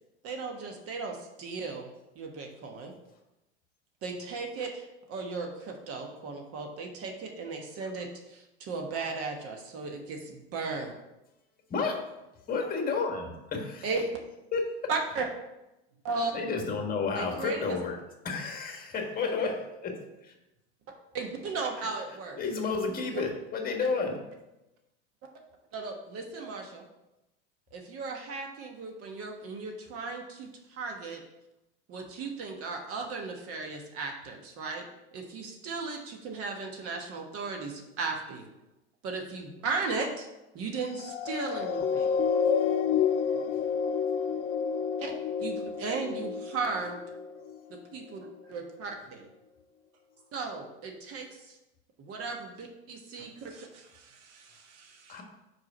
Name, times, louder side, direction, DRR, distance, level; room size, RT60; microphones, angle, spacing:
voice 1, 0.2-1.9 2.1-2.9 4.0-10.9 13.8-14.2 14.9-15.3 16.0-16.3 17.1-17.8 21.1-22.4 23.1-23.3 25.7-26.9 27.7-31.2 31.9-34.8 35.1-38.5 39.0-40.3 40.5-42.3 45.0-45.1 45.4-47.0 47.7-48.2 48.5-49.3 50.3-51.6 52.0-53.5, right 4 dB, 40° right, 2 dB, 1.2 m, -36 dB
voice 2, 11.7-12.0 12.5-13.9 14.5-14.7 16.3-18.0 18.2-20.3 22.4-24.2 55.1-55.2, left 4 dB, 25° left, 2 dB, 1.5 m, -31 dB
sound 1, 40.9-47.6 48.2-48.3, left 7 dB, 45° left, 0.7 m, -29 dB
voice 3, 53.2-55.2, right 5 dB, 70° right, 3 dB, 1.4 m, -56 dB
4.8 x 4.7 x 5.9 m, 0.95 s
hypercardioid pair, 110°, 34 cm